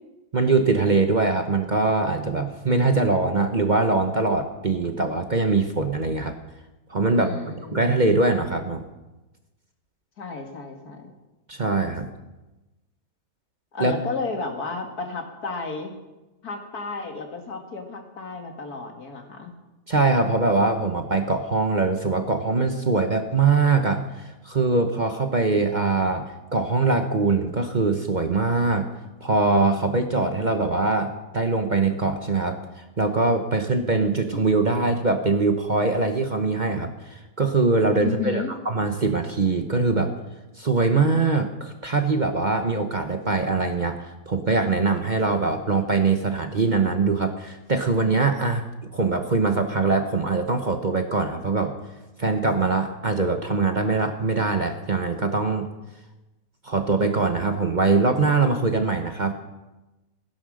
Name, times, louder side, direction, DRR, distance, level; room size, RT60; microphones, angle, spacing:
voice 1, 0.3-6.3 6.9-7.3 7.7-8.8 11.5-12.1 13.8-13.9 19.9-28.9 29.2-40.1 40.6-48.6 48.9-51.7 52.2-55.7 56.6-59.3, right 3 dB, 35° right, 6 dB, 1.0 m, -22 dB
voice 2, 7.2-8.0 10.2-11.1 13.7-16.0 16.4-19.5 38.0-38.5, left 4 dB, 75° left, 3 dB, 2.5 m, -32 dB
16.5 x 10.5 x 6.4 m, 1.1 s
omnidirectional pair, 1.6 m